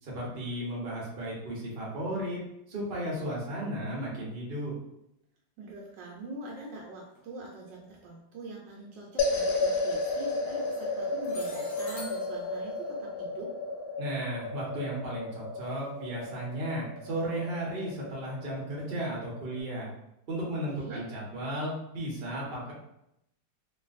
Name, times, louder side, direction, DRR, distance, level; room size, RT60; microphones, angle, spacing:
voice 1, 0.0-2.4 2.7-4.7 14.0-19.9 20.3-22.7, right 1 dB, 45° right, -5 dB, 0.7 m, -34 dB
voice 2, 5.6-13.5 20.6-21.0, right 2 dB, 75° right, -2 dB, 1.2 m, -43 dB
sound 1, 7.2-7.3 9.3-9.5 10.3-10.7 11.2-14.2 15.6-15.9 16.2-16.3 17.0-17.1 18.8-18.9, left 2 dB, 65° left, 1.5 m, -48 dB
sound 2, 9.2-19.6, left 3 dB, 85° left, 1.5 m, -33 dB
3.2 x 2.5 x 2.4 m, 0.80 s
omnidirectional pair, 2.2 m